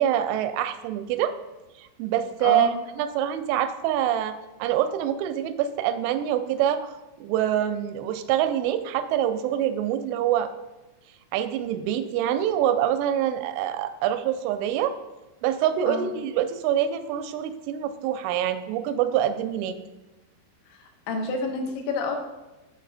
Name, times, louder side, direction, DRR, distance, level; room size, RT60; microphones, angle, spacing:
voice 1, 0.0-1.3 1.8-2.7 3.0-6.9 7.2-10.5 11.3-14.9 15.4-19.8, right 10 dB, 90° right, 10 dB, 3.1 m, -25 dB
voice 2, 2.4-2.8 15.9-16.1 20.8-22.2, left 3 dB, 80° left, 4 dB, 2.9 m, -29 dB
7.4 x 6.4 x 4.0 m, 1.1 s
omnidirectional pair, 5.4 m